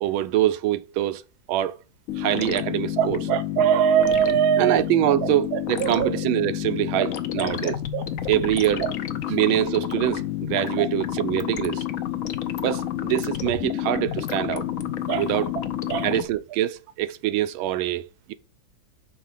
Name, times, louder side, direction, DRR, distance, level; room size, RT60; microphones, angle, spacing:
voice 1, 0.0-1.2 1.5-1.8 2.2-3.2 4.6-7.8 8.3-8.9 9.3-11.8 12.6-14.6 15.2-15.5 16.0-18.3, right 13 dB, 90° right, 1.4 m, -24 dB
sound 1, 2.1-16.2, left 11 dB, 80° left, 0.7 m, -29 dB
voice 2, 3.0-4.8 5.2-6.1 7.0-7.1 7.4-8.0 10.8-10.9 15.1-15.2 15.9-16.0, right 10 dB, 65° right, 1.0 m, -23 dB
5.4 x 4.2 x 5.4 m
omnidirectional pair, 2.2 m